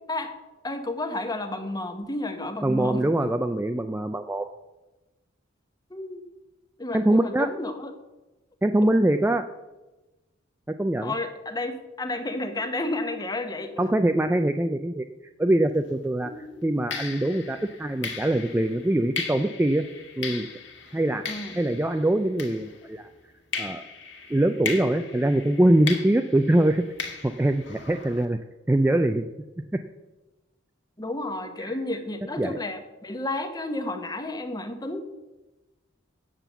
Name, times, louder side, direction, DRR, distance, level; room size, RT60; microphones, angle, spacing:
voice 1, 0.6-3.1 5.9-6.3 6.8-7.9 11.0-13.7 16.2-16.6 21.3-21.5 24.8-25.1 31.0-35.0, left 2 dB, 20° left, 7 dB, 1.0 m, -31 dB
voice 2, 2.6-4.5 6.9-7.5 8.6-9.4 10.7-11.1 13.8-15.0 15.4-19.8 20.2-20.5 20.9-21.2 21.5-23.1 23.6-23.8 24.3-26.8 27.2-28.4 28.7-29.3 31.6-31.8 32.4-32.6, right 1 dB, 10° right, 6 dB, 0.3 m, -23 dB
sound 1, 15.7-16.0 16.9-23.1 23.5-28.2, left 5 dB, 60° left, 1.7 m, -37 dB
9.1 x 7.5 x 6.9 m, 1.1 s
head